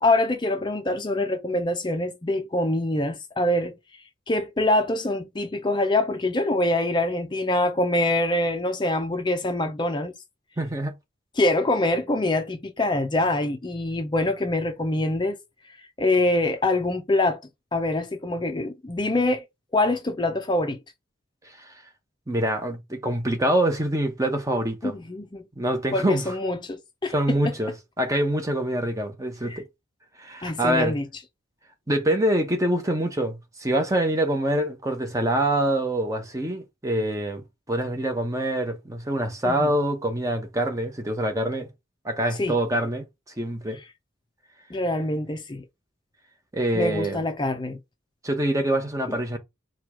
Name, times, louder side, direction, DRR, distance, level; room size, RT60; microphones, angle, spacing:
voice 1, 0.0-3.7 4.3-10.1 11.4-15.4 15.8-17.4 17.7-19.5 19.7-20.8 24.8-25.4 25.9-27.4 29.4-29.6 30.4-31.1 39.4-39.7 42.4-42.5 44.7-45.6 46.7-47.8 49.1-49.2, left 2 dB, 25° left, 0.5 m, -24 dB
voice 2, 10.6-10.9 21.6-21.7 22.3-24.9 25.6-26.3 27.1-29.6 30.2-31.0 31.9-41.7 42.0-43.1 43.4-43.8 46.5-47.2 48.2-49.4, right 1 dB, 15° right, 0.8 m, -25 dB
4.5 x 2.3 x 4.6 m
head